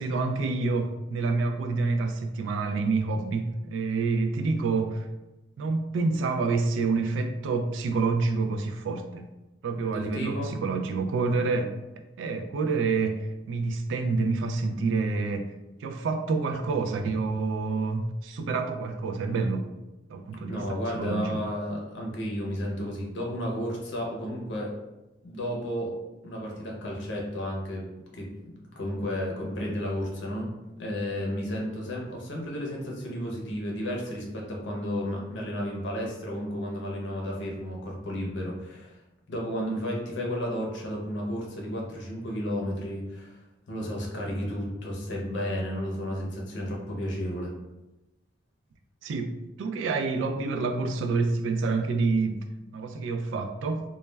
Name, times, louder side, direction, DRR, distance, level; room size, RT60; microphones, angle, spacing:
voice 1, 0.0-5.1 5.6-9.3 9.6-11.7 12.2-15.5 15.8-19.6 20.1-21.4 49.0-52.4 52.7-53.8, right 3 dB, 70° right, 6 dB, 0.3 m, -28 dB
voice 2, 9.9-10.5 20.5-24.7 25.2-25.9 26.2-27.9 28.1-28.3 28.8-30.5 30.8-39.0 39.3-43.4 43.7-47.5, equal, 65° left, -1 dB, 0.6 m, -32 dB
2.2 x 2.1 x 3.1 m, 1.0 s
head